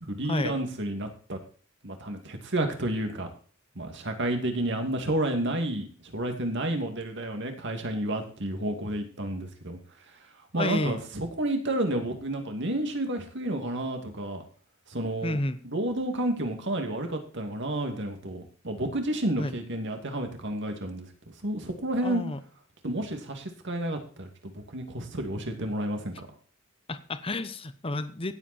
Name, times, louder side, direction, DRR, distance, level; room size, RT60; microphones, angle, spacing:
voice 1, 0.0-1.4 1.8-3.3 3.8-9.8 10.5-14.4 14.9-15.4 15.6-21.1 21.4-22.2 22.8-26.3, right 1 dB, 60° right, 5 dB, 2.4 m, -30 dB
voice 2, 10.5-11.0 15.2-15.6 19.4-19.5 22.0-22.4 26.9-28.4, left 2 dB, 25° left, 12 dB, 0.9 m, -31 dB
16.5 x 8.2 x 4.4 m, 0.41 s
head